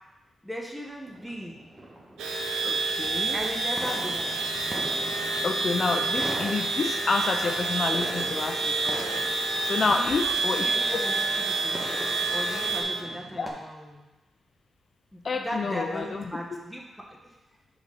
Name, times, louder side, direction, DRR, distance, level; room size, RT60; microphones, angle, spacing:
voice 1, 0.4-1.6 3.3-5.0 9.7-11.8 12.3-14.0 15.1-17.3, equal, ahead, -1 dB, 1.3 m, -38 dB
sound 1, 1.1-13.5, right 1 dB, 15° right, 1.4 m, -42 dB
sound 2, 2.2-12.8, right 3 dB, 90° right, 0.7 m, -28 dB
voice 2, 2.6-3.4 5.4-9.3 9.6-10.8 13.4-13.5 15.2-16.2 16.5-16.6, left 4 dB, 55° left, 4 dB, 0.5 m, -29 dB
Trumpet, 4.3-13.2, right 2 dB, 35° right, 2.1 m, -47 dB
5.0 x 4.1 x 4.9 m, 1.0 s
cardioid pair, 55°, 0 cm